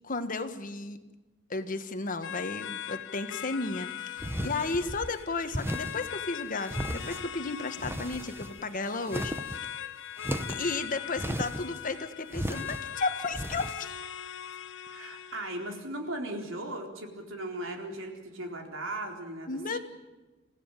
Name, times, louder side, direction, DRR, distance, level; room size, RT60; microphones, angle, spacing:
voice 1, 0.0-1.0 1.5-9.3 10.5-14.0 19.5-19.8, left 3 dB, 45° left, 9 dB, 1.5 m, -34 dB
sound 1, 2.2-15.8, left 10 dB, 65° left, 0.9 m, -40 dB
sound 2, 4.2-5.1 5.5-6.1 6.6-7.3 7.8-8.6 8.9-9.6 10.2-10.7 11.1-11.8 12.3-12.8 13.3-13.7, right 1 dB, 10° right, 1.0 m, -35 dB
voice 2, 14.9-19.8, right 1 dB, 80° right, 3 dB, 4.0 m, -37 dB
27.5 x 16.0 x 9.1 m, 1.2 s
head